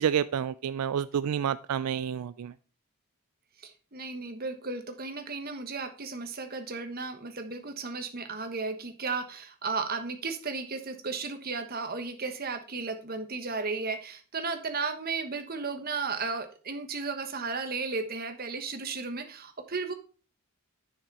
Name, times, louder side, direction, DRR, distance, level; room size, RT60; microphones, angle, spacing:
voice 1, 0.0-2.5, right 8 dB, 90° right, 15 dB, 0.4 m, -29 dB
voice 2, 3.6-19.9, right 4 dB, 40° right, 7 dB, 1.2 m, -34 dB
10.5 x 5.9 x 4.1 m, 0.38 s
head